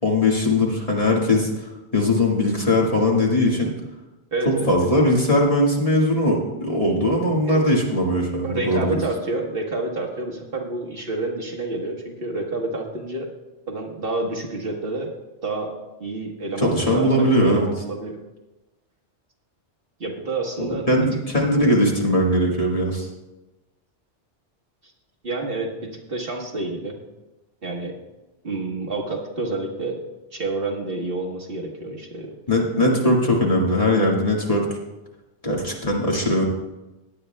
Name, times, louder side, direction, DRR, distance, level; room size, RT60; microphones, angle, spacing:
voice 1, 0.0-1.6 1.9-3.7 4.5-8.9 16.6-17.7 20.9-23.1 32.5-34.6 35.4-36.4, left 1 dB, 30° left, -2 dB, 1.8 m, -20 dB
voice 2, 4.3-4.6 7.4-7.6 8.4-13.3 13.7-15.1 15.4-15.7 16.0-18.2 20.0-20.9 25.2-27.0 27.6-27.9 28.4-30.0 30.3-32.4, right 2 dB, 55° right, 0 dB, 1.5 m, -29 dB
17.0 x 9.5 x 2.2 m, 1.0 s
omnidirectional pair, 1.2 m